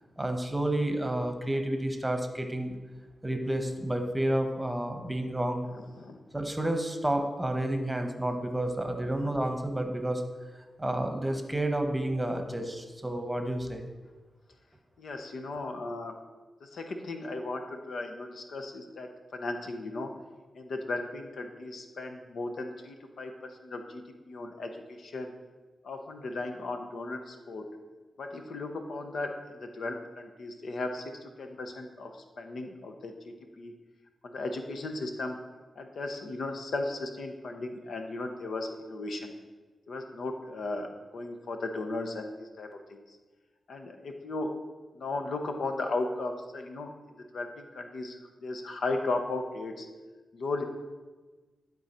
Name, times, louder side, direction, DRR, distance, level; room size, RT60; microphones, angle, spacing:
voice 1, 0.2-2.7 3.2-5.7 6.3-10.2 10.8-13.9, right 1 dB, 15° right, 5 dB, 1.0 m, -30 dB
voice 2, 15.0-16.1 16.6-20.1 20.5-23.3 23.6-25.3 25.8-27.7 28.2-31.0 31.4-32.1 32.4-33.1 33.6-33.7 34.2-35.4 35.8-39.3 39.9-43.0 43.7-44.5 45.0-46.9 47.3-49.9 50.3-50.6, left 2 dB, 75° left, 5 dB, 0.8 m, -36 dB
11.5 x 3.9 x 4.3 m, 1.3 s
cardioid pair, 55°, 0 cm